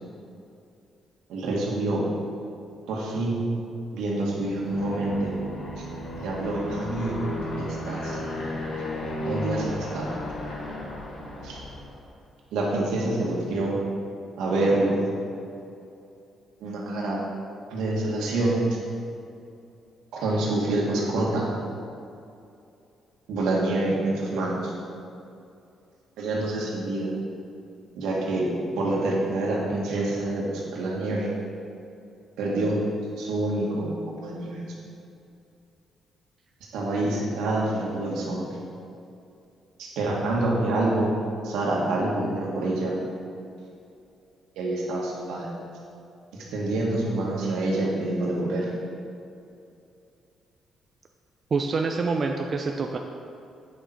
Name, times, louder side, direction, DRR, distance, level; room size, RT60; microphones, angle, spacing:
voice 1, 1.3-2.0 2.9-3.4 3.9-5.3 5.8-5.9 6.2-7.2 7.6-8.2 9.2-10.1 11.4-11.6 12.5-13.8 14.4-15.1 16.6-17.2 17.7-18.6 20.1-21.5 23.3-24.7 26.2-27.1 28.0-28.5 28.8-31.3 32.4-32.8 33.2-33.9 34.2-34.6 36.7-38.5 39.8-41.1 41.4-43.0 44.6-45.5 46.5-48.7, right 2 dB, 85° right, -3 dB, 1.9 m, -26 dB
Aircraft, 4.7-12.0, left 1 dB, 65° left, 1.9 m, -34 dB
voice 2, 51.5-53.0, right 4 dB, 45° right, 3 dB, 0.5 m, -26 dB
8.6 x 6.6 x 4.5 m, 2.6 s
cardioid pair, 90°, 0 cm